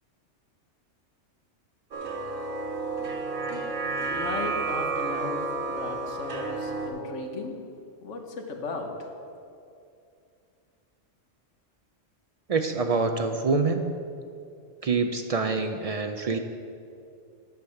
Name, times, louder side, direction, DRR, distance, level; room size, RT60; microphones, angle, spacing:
sound 1, 1.9-6.9, right 3 dB, 80° right, 1.4 m, -31 dB
voice 1, 4.1-7.6 8.0-8.9, left 3 dB, 70° left, 3 dB, 1.4 m, -36 dB
voice 2, 12.5-13.9 14.8-16.4, right 4 dB, 60° right, 6 dB, 0.3 m, -26 dB
9.3 x 5.7 x 7.9 m, 2.5 s
omnidirectional pair, 1.3 m